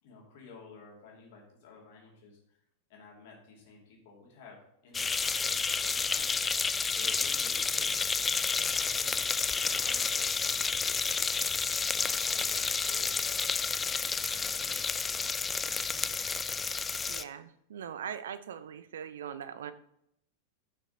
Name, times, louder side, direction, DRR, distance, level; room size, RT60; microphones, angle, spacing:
voice 1, 0.0-2.6 2.9-9.2 9.6-13.4 13.7-14.9 15.4-16.3, left 4 dB, 50° left, -1 dB, 2.6 m, -54 dB
sound 1, 4.9-17.2, left 5 dB, 15° left, 0.4 m, -30 dB
voice 2, 17.1-19.7, right 8 dB, 60° right, 13 dB, 0.6 m, -41 dB
11.0 x 6.1 x 3.8 m, 0.76 s
figure-of-eight pair, 90°, 0 cm